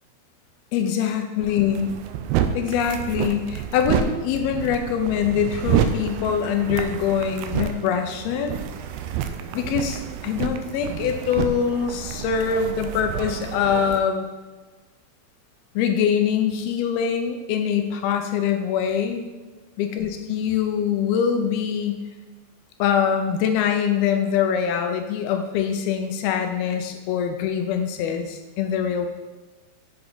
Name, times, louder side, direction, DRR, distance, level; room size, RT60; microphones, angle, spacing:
voice 1, 0.7-1.9 2.5-8.6 9.5-14.3 15.8-19.3 19.8-22.1 22.8-29.1, left 8 dB, 80° left, 5 dB, 2.5 m, -24 dB
sound 1, 1.4-14.0, right 9 dB, 80° right, 2.2 m, -29 dB
8.2 x 5.8 x 4.0 m, 1.2 s
omnidirectional pair, 4.5 m